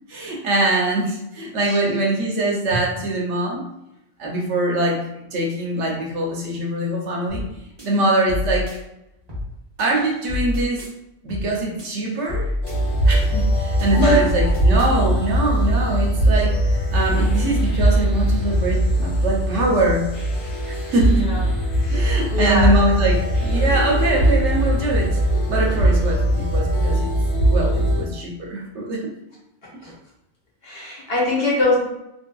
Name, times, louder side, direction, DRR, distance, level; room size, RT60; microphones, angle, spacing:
voice 1, 0.1-3.6 4.2-5.0 5.3-7.4 7.8-8.8 9.8-10.9 11.2-12.5 13.1-16.6 16.9-20.0 20.7-21.3 21.9-25.1 25.5-27.1 27.5-29.1, right 1 dB, 75° right, -2 dB, 1.0 m, -23 dB
voice 2, 1.6-2.0 14.0-14.2 21.1-21.4 21.8-22.7 29.8-29.9 30.6-31.8, left 2 dB, 55° left, -4 dB, 1.1 m, -23 dB
sound 1, 7.3-7.5 7.8-8.8 9.3-9.5 9.8-10.9 11.3-11.5 11.8-12.8 13.3-13.5 13.8-14.9, left 2 dB, 25° right, 0.8 m, -29 dB
sound 2, 12.6-28.0, right 1 dB, 90° left, 1.1 m, -20 dB
3.0 x 2.6 x 2.2 m, 0.86 s
omnidirectional pair, 1.3 m